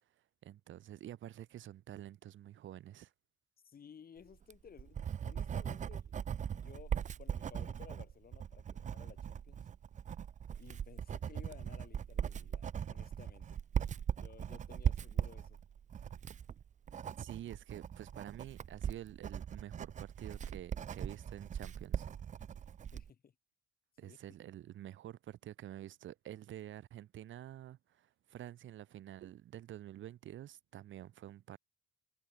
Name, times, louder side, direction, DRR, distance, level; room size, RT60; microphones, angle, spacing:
voice 1, 0.4-3.1 17.2-22.1 24.0-31.6, right 12 dB, 75° right, 2.5 m, -49 dB
voice 2, 3.6-6.1 6.5-9.7 10.6-13.6 14.2-15.6 22.9-23.3 24.0-24.2, left 7 dB, 50° left, 2.8 m, -57 dB
Writing, 4.3-23.1, right 8 dB, 40° right, 0.5 m, -40 dB
cardioid pair, 90°, 20 cm